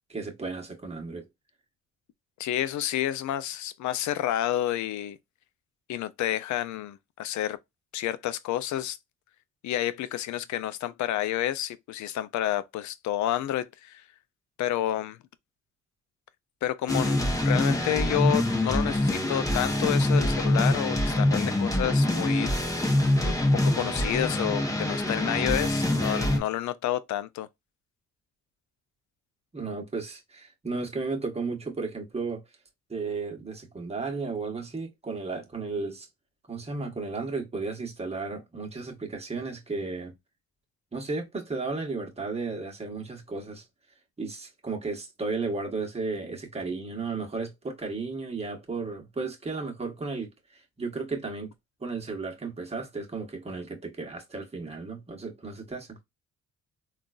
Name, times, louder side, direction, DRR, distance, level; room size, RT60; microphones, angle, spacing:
voice 1, 0.1-1.3 29.5-32.4 32.9-36.1 36.5-40.1 40.9-43.6 44.2-51.5 51.8-56.0, right 4 dB, 20° right, 1.2 m, -34 dB
voice 2, 2.4-5.2 5.9-7.6 7.9-9.0 9.6-14.0 14.6-15.2 16.6-22.5 23.2-23.3 23.6-27.5, left 12 dB, 70° left, 0.5 m, -30 dB
sound 1, 16.9-26.4, left 1 dB, 10° left, 0.8 m, -25 dB
3.7 x 2.4 x 2.3 m
cardioid pair, 90°, 30 cm